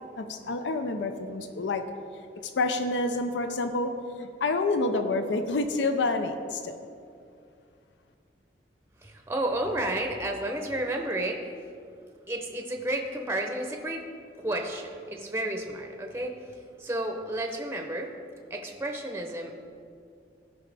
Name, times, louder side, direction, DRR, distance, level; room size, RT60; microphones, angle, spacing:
voice 1, 0.2-1.8 2.4-3.9 4.2-6.8, left 3 dB, 90° left, 7 dB, 0.5 m, -28 dB
voice 2, 9.0-11.5 12.3-14.1 14.3-16.3 16.8-18.1 18.5-19.5, right 1 dB, 15° right, 3 dB, 0.6 m, -31 dB
15.5 x 5.5 x 3.4 m, 2.4 s
head